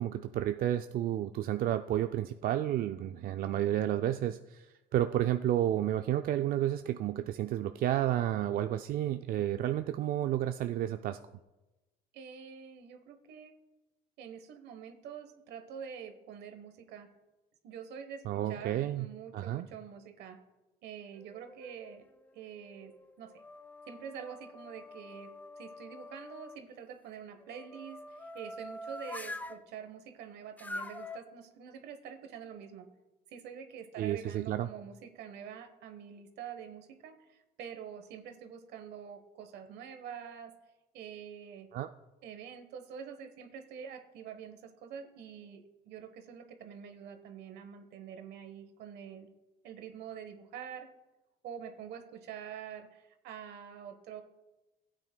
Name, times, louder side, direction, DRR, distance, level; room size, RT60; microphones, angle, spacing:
voice 1, 0.0-11.2 18.3-19.1 19.3-19.7 34.0-34.7 41.7-41.9, right 12 dB, 60° right, 8 dB, 0.4 m, -31 dB
voice 2, 12.1-13.5 14.2-17.1 17.6-20.4 20.8-22.0 22.3-23.4 23.9-25.3 25.6-32.9 33.3-40.5 40.9-41.7 42.2-49.3 49.6-50.9 51.4-54.2, right 8 dB, 80° right, 9 dB, 1.2 m, -46 dB
sound 1, 21.2-22.1 22.6-26.6 27.4-29.6 30.6-31.2, left 1 dB, 10° left, 0.5 m, -45 dB
15.5 x 8.9 x 2.2 m, 1.0 s
cardioid pair, 110°, 17 cm